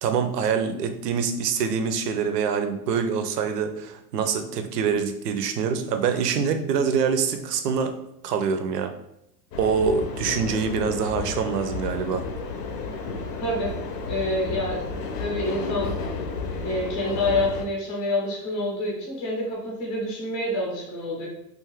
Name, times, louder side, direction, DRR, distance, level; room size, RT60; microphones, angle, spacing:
voice 1, 0.0-7.9 8.2-8.9 9.6-12.2, right 6 dB, 75° right, 7 dB, 0.6 m, -25 dB
sound 1, 9.5-17.7, left 4 dB, 70° left, 0.6 m, -32 dB
voice 2, 13.4-13.7 14.0-14.9 15.2-15.9 16.6-21.3, left 1 dB, 20° left, -3 dB, 0.5 m, -27 dB
2.5 x 2.4 x 3.0 m, 0.83 s
supercardioid pair, 160°, 49 cm